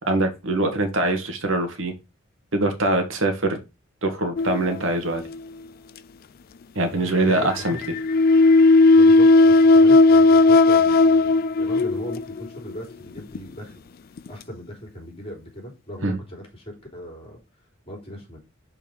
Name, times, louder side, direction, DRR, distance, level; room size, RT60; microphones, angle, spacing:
voice 1, 0.0-1.9 2.5-3.6 4.0-5.2 6.8-7.8 16.0-16.2, right 2 dB, 65° right, 5 dB, 1.9 m, -23 dB
sound 1, 4.4-5.3 7.3-12.5 13.2-13.4 14.2-14.3, left 3 dB, 45° left, 0.3 m, -15 dB
voice 2, 7.0-7.8 8.1-8.2 8.9-13.8 14.3-17.4 17.8-18.4, equal, 30° left, 1 dB, 3.4 m, -38 dB
5.4 x 4.6 x 6.1 m, 0.26 s
head